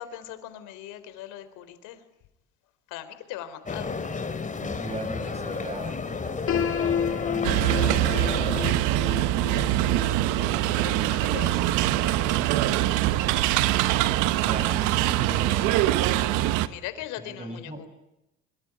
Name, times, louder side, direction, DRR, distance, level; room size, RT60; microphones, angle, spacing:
voice 1, 0.0-2.0 2.9-3.9 4.4-4.5 10.8-12.7 16.7-17.9, left 12 dB, 85° left, 11 dB, 3.8 m, -40 dB
sound 1, 3.7-8.7, left 4 dB, 25° left, 3.4 m, -32 dB
voice 2, 4.6-8.8 14.4-16.7 17.3-17.9, right 2 dB, 20° right, 9 dB, 7.6 m, -39 dB
Piano, 6.5-12.3, left 8 dB, 50° left, 4.9 m, -32 dB
sound 2, 7.4-16.7, right 14 dB, 90° right, 1.3 m, -23 dB
24.5 x 23.5 x 9.9 m, 0.89 s
cardioid pair, 95°, 30 cm